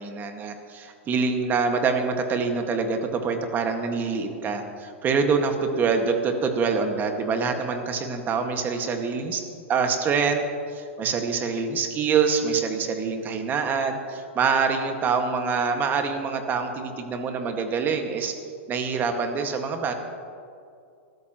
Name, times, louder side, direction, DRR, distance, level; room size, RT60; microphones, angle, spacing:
voice 1, 0.0-9.4 9.7-10.4 10.7-18.3 18.7-19.9, right 5 dB, 25° right, 5 dB, 1.8 m, -25 dB
24.0 x 13.5 x 3.1 m, 2.4 s
hypercardioid pair, 110°, 7 cm